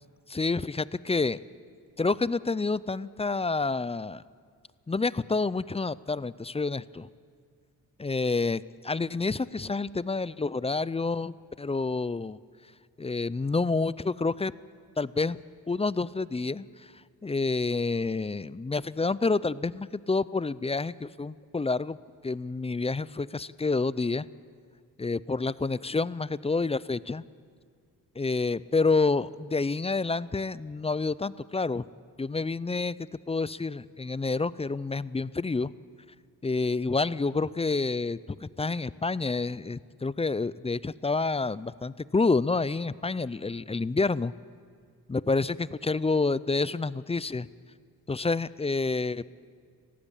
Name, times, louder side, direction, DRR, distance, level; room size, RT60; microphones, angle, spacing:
voice 1, 0.3-1.4 2.0-4.2 4.9-7.1 8.0-12.4 13.0-14.5 15.0-15.4 15.7-16.9 17.2-22.0 22.2-24.2 25.0-27.2 28.2-31.8 32.2-35.7 36.4-44.3 45.1-47.5 48.1-49.2, left 3 dB, 15° left, 19 dB, 0.4 m, -28 dB
19.5 x 15.5 x 8.9 m, 2.1 s
cardioid pair, 70°, 40 cm